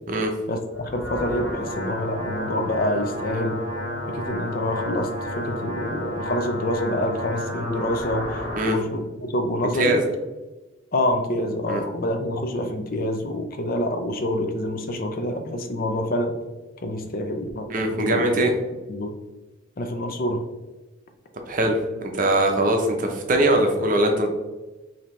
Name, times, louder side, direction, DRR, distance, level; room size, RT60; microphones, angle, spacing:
voice 1, 0.5-3.6 4.1-5.1 5.4-10.0 10.9-16.3 16.8-18.5 18.9-19.1 19.8-20.4, left 1 dB, 45° left, 6 dB, 0.5 m, -27 dB
sound 1, 0.7-8.7, left 1 dB, 70° left, 1.4 m, -31 dB
voice 2, 17.7-18.5 21.5-21.8 22.1-24.3, right 1 dB, 40° right, 3 dB, 0.7 m, -21 dB
5.2 x 2.9 x 3.1 m, 1.2 s
head